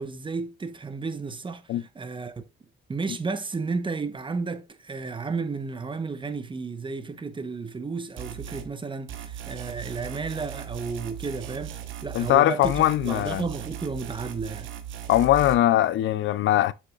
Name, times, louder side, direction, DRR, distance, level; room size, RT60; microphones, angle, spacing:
voice 1, 0.0-2.4 2.9-12.7 13.0-14.7, right 4 dB, 25° right, 0.9 m, -33 dB
sound 1, 8.2-8.7 9.1-12.4 12.6-15.6, right 9 dB, 75° right, 1.1 m, -38 dB
voice 2, 12.1-13.4 15.1-16.7, left 13 dB, 75° left, 0.5 m, -21 dB
7.6 x 6.8 x 2.3 m
cardioid pair, 90°, 20 cm